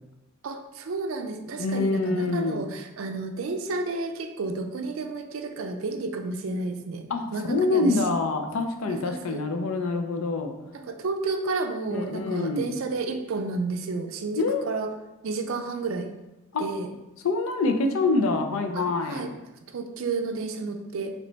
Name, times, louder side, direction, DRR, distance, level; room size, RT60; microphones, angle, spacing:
voice 1, 0.4-7.0 7.3-8.0 8.9-9.4 10.7-14.9 15.2-16.1 16.6-16.9 18.7-19.3 19.7-21.1, right 3 dB, 70° right, 6 dB, 0.4 m, -31 dB
voice 2, 1.6-2.6 7.1-10.5 11.9-12.7 14.4-14.6 16.5-16.6 17.2-19.3, left 3 dB, 70° left, 6 dB, 0.5 m, -26 dB
3.3 x 3.0 x 3.9 m, 1.0 s
head